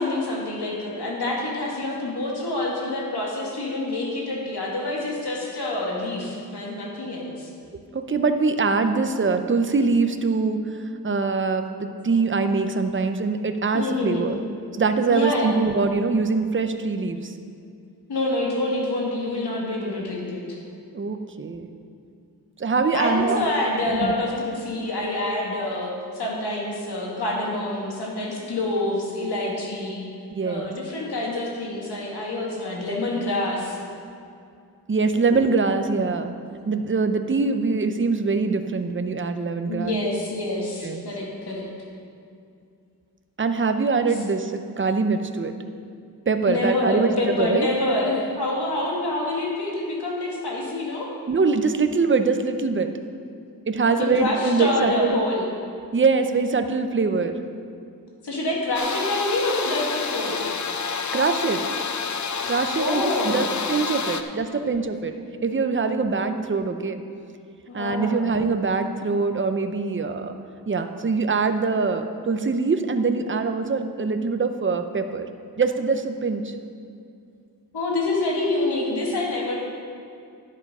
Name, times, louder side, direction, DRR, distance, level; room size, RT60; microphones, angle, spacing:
voice 1, 0.0-7.5 13.7-14.3 15.1-15.6 18.1-20.6 22.9-30.1 30.4-33.8 39.7-41.7 46.5-51.1 53.8-55.5 58.2-60.4 62.8-63.5 67.7-68.3 77.7-79.7, left 2 dB, 80° left, -3 dB, 2.2 m, -27 dB
voice 2, 7.9-10.7 11.0-14.4 14.8-17.3 20.9-21.7 22.6-23.4 23.9-24.1 30.3-30.7 34.9-36.3 36.7-40.0 40.8-41.0 43.4-45.5 46.3-47.7 51.3-52.9 53.7-55.2 55.9-57.4 61.1-61.7 62.4-65.1 65.4-67.0 67.7-70.3 70.7-75.3 75.6-76.5, right 4 dB, 30° right, 7 dB, 0.7 m, -23 dB
sound 1, 58.7-64.2, left 5 dB, 50° left, 0.6 m, -29 dB
11.0 x 7.4 x 5.4 m, 2.4 s
wide cardioid pair, 85°, 39 cm